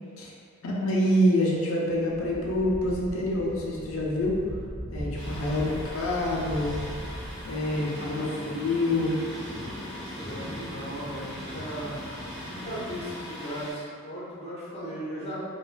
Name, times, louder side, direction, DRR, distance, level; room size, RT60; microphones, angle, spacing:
voice 1, 0.6-4.4 4.9-6.8 7.4-9.2, left 1 dB, 75° left, -4 dB, 0.5 m, -26 dB
sound 1, 1.9-8.0, equal, 65° right, 0.6 m, -39 dB
Thunder, 5.1-13.7, left 1 dB, ahead, 0.8 m, -41 dB
voice 2, 5.5-5.9 7.8-8.6 10.2-12.1 12.4-15.4, equal, 30° left, -10 dB, 0.8 m, -37 dB
sound 2, 7.7-13.2, equal, 20° right, 0.4 m, -42 dB
2.3 x 2.2 x 2.3 m, 2.1 s
head